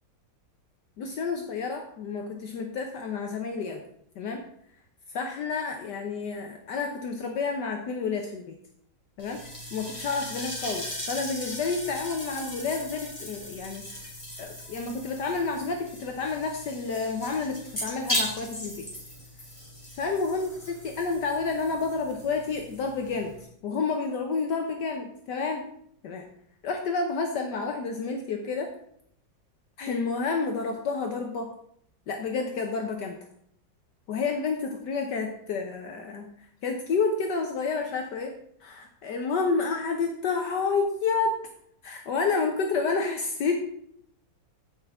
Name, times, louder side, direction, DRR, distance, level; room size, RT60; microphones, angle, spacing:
voice 1, 1.0-3.8 4.2-4.4 5.1-8.5 9.2-9.4 9.7-13.8 14.4-18.9 19.9-23.3 23.6-25.6 26.0-26.2 26.6-28.7 29.8-31.5 32.1-33.2 34.1-38.3 38.6-41.4 41.8-43.5, left 4 dB, 70° left, 3 dB, 1.5 m, -30 dB
sound 1, 9.2-23.4, equal, 15° left, 3.0 m, -38 dB
15.0 x 5.8 x 3.6 m, 0.69 s
omnidirectional pair, 2.0 m